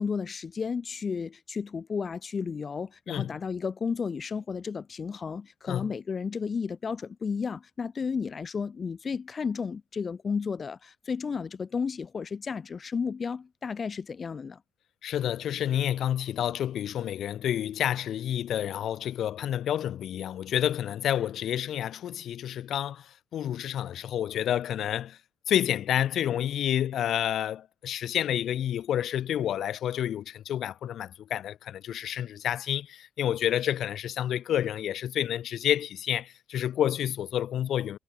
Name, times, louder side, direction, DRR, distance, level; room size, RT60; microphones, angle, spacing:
voice 1, 0.0-14.6, left 5 dB, 30° left, 0.9 m, -33 dB
voice 2, 15.0-25.2 25.5-38.0, left 10 dB, 55° left, 0.6 m, -29 dB
cardioid pair, 145°, 0 cm